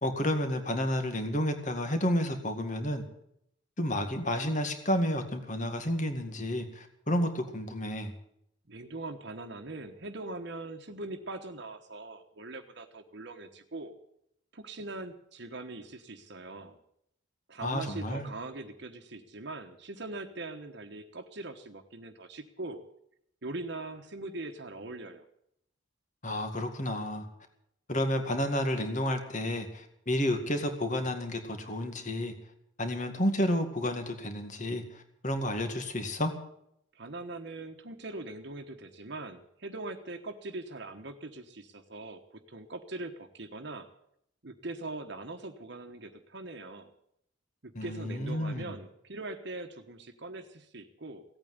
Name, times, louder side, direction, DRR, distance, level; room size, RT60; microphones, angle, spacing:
voice 1, 0.0-3.0 3.8-8.1 17.6-18.3 26.2-27.3 27.9-32.3 32.8-36.3 47.7-48.7, left 1 dB, 40° left, 7 dB, 2.0 m, -31 dB
voice 2, 8.7-13.9 14.5-16.8 17.5-22.8 23.4-25.3 36.9-42.2 42.5-43.9 44.4-46.9 47.6-51.2, right 2 dB, 60° right, 5 dB, 1.3 m, -41 dB
16.5 x 8.8 x 9.6 m, 0.73 s
head